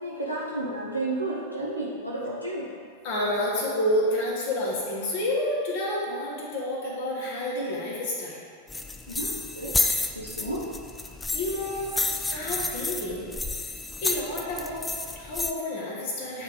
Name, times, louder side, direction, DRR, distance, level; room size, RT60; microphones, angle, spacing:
voice 1, 0.0-2.7 9.1-9.7 10.1-10.6, right 2 dB, 90° left, -5 dB, 0.9 m, -32 dB
voice 2, 3.0-8.4 11.3-11.9 12.3-13.3 14.0-16.4, left 1 dB, 45° left, -4 dB, 1.8 m, -29 dB
sound 1, 8.7-15.5, left 3 dB, 10° left, 0.4 m, -30 dB
9.2 x 3.7 x 4.8 m, 2.1 s
figure-of-eight pair, 90°, 0 cm